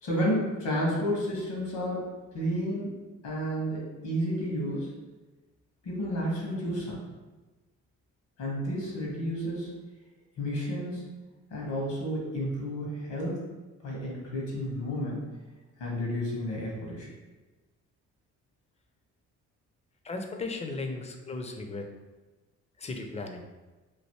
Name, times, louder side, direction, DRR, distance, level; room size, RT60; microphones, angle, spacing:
voice 1, 0.0-2.1 2.3-4.9 5.8-7.0 8.4-9.8 10.4-11.2 11.5-13.5 13.8-15.2 15.8-17.1, equal, 80° left, -3 dB, 1.3 m, -31 dB
voice 2, 20.0-21.9 22.8-23.4, left 3 dB, 20° left, 4 dB, 0.4 m, -36 dB
3.1 x 2.6 x 3.0 m, 1.2 s
cardioid pair, 90°, 30 cm